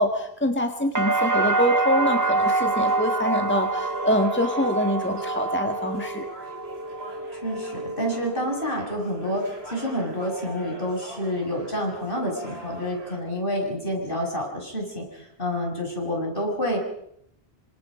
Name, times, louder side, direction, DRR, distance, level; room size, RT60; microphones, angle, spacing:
voice 1, 0.0-6.3, equal, 10° left, 5 dB, 1.7 m, -25 dB
sound 1, 0.9-8.9 9.2-9.9, right 3 dB, 20° right, 0.9 m, -26 dB
sound 2, 2.1-13.2, equal, 75° right, 5.2 m, -42 dB
voice 2, 7.3-16.8, equal, 60° left, 1 dB, 7.0 m, -28 dB
28.5 x 25.5 x 5.2 m, 0.72 s
omnidirectional pair, 1.1 m